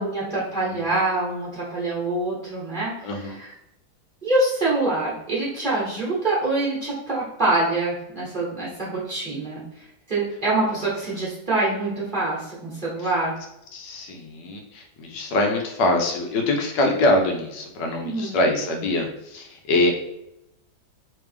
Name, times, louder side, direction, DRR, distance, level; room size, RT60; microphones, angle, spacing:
voice 1, 0.0-3.5 4.2-9.6 10.1-13.3 18.0-18.4, right 2 dB, 30° right, -8 dB, 1.2 m, -25 dB
voice 2, 3.0-3.4 13.7-19.9, left 2 dB, 75° left, 2 dB, 1.2 m, -24 dB
3.3 x 3.2 x 3.3 m, 0.84 s
omnidirectional pair, 2.0 m